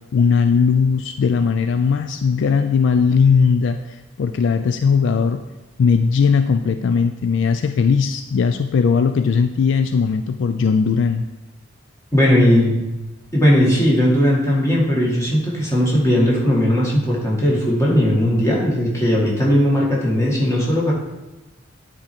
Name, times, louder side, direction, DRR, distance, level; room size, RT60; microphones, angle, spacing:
voice 1, 0.1-3.8 4.2-5.4 5.8-11.2, left 5 dB, 60° left, 9 dB, 0.3 m, -18 dB
voice 2, 12.1-12.7 13.3-20.9, equal, 15° left, -4 dB, 1.7 m, -17 dB
9.5 x 4.3 x 4.4 m, 1.0 s
head